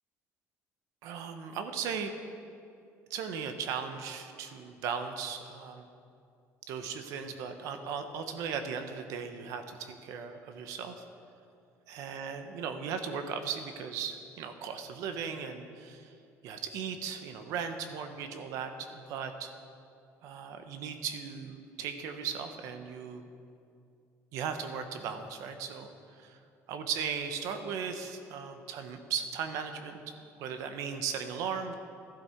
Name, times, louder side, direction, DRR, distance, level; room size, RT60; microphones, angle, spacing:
voice 1, 1.0-2.1 3.1-5.9 6.7-11.0 11.9-16.1 16.4-19.5 20.2-23.2 24.3-26.4 26.7-31.7, right 6 dB, 70° right, 7 dB, 1.0 m, -37 dB
13.0 x 11.5 x 4.5 m, 2.5 s
cardioid pair, 160°, 6 cm